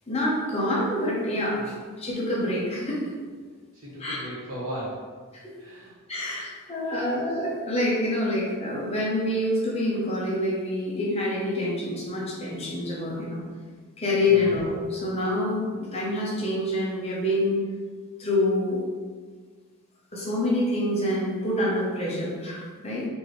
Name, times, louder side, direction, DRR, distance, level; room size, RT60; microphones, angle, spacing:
voice 1, 0.1-3.0 4.0-4.2 5.4-5.5 6.1-13.4 14.0-17.5 18.2-18.8 20.1-23.1, left 1 dB, 25° left, -5 dB, 0.8 m, -26 dB
voice 2, 3.7-5.1 5.6-5.9 6.8-7.1 14.3-14.5, equal, 75° right, -6 dB, 1.4 m, -37 dB
4.6 x 2.6 x 3.2 m, 1.5 s
head